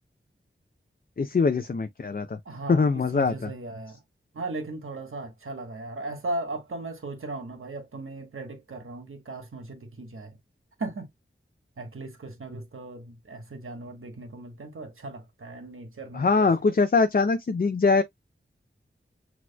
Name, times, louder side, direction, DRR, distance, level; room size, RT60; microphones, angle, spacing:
voice 1, 1.2-2.4 2.7-3.5 16.1-18.0, left 4 dB, 45° left, 0.5 m, -23 dB
voice 2, 2.4-4.0 4.3-10.4 10.8-11.1 11.8-16.5, right 2 dB, 80° right, 1.3 m, -37 dB
6.2 x 2.9 x 2.2 m
wide cardioid pair, 60°, 21 cm